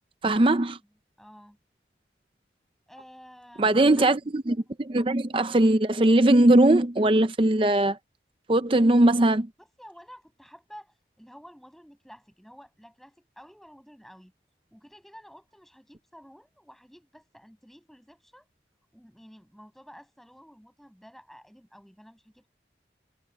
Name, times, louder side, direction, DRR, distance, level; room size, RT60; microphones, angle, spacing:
voice 1, 0.2-0.8 3.6-8.0 8.5-9.5, right 1 dB, 30° right, 0.5 m, -20 dB
voice 2, 1.2-1.6 2.9-4.1 9.6-14.3 14.7-18.5 18.9-22.5, equal, ahead, 6.2 m, -51 dB
head